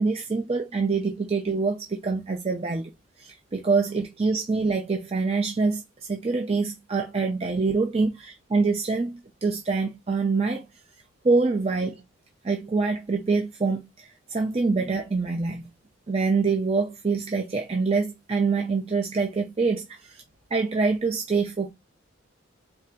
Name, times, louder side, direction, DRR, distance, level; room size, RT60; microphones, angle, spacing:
voice 1, 0.0-2.9 3.2-5.8 6.1-10.7 11.2-12.0 12.4-15.7 16.1-20.2 20.5-21.7, right 4 dB, 30° right, 0.4 m, -25 dB
3.3 x 2.5 x 4.4 m
head